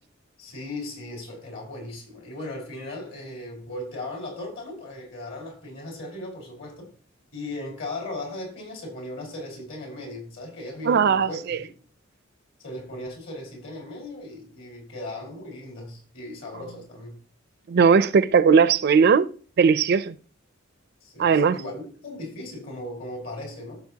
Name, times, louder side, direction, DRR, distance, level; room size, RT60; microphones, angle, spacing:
voice 1, 0.4-6.9 7.3-11.7 12.6-17.1 21.0-23.8, left 1 dB, 65° left, 4.7 m, -37 dB
voice 2, 10.9-11.3 17.7-19.3 19.6-20.1 21.2-21.6, right 6 dB, 55° right, 0.4 m, -18 dB
15.0 x 6.3 x 2.9 m
head